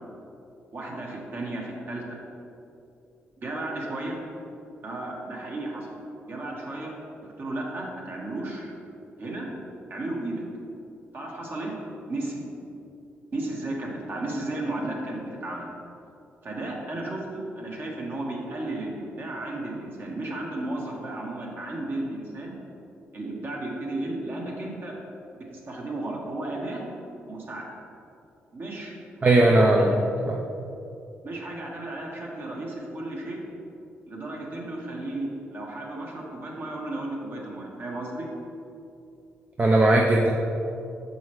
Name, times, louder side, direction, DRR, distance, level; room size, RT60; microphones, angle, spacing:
voice 1, 0.7-2.2 3.4-4.2 4.8-5.9 6.3-6.9 7.2-8.7 9.2-9.5 9.9-10.4 11.1-11.7 12.1-12.4 13.3-15.7 16.4-22.6 23.1-25.0 25.5-26.8 27.3-27.7 28.5-28.9 29.2-30.0 31.2-33.4 34.1-38.3, right 2 dB, 50° right, -2 dB, 1.3 m, -34 dB
voice 2, 29.2-30.0 30.3-30.4 39.6-40.3, right 2 dB, 35° right, -1 dB, 0.5 m, -18 dB
6.4 x 5.4 x 3.1 m, 2.7 s
cardioid pair, 70°, 5 cm